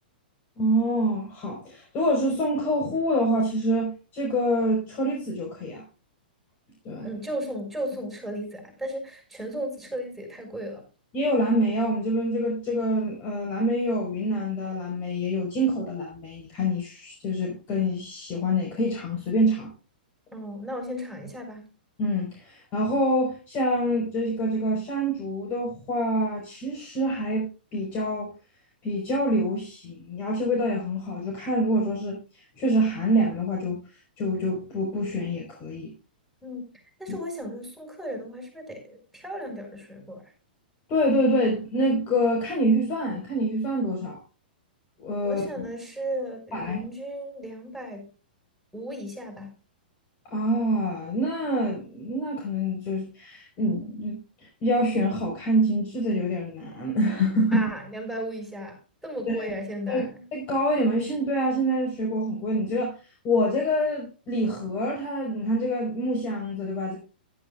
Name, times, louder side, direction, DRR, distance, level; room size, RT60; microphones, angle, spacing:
voice 1, 0.6-5.8 6.8-7.1 11.1-19.7 22.0-27.5 27.7-28.3 28.8-33.8 34.2-35.9 37.1-37.2 40.9-44.2 45.0-45.6 46.5-46.8 50.2-57.7 59.3-59.4 59.9-60.0 60.3-63.0 63.2-67.0, equal, 35° left, 1 dB, 4.8 m, -26 dB
voice 2, 6.9-10.9 20.3-21.7 36.4-36.7 37.0-40.2 45.2-48.1 48.7-49.5 57.5-60.2, equal, ahead, 3 dB, 5.9 m, -35 dB
15.0 x 12.5 x 2.5 m, 0.35 s
hypercardioid pair, 125°, 5 cm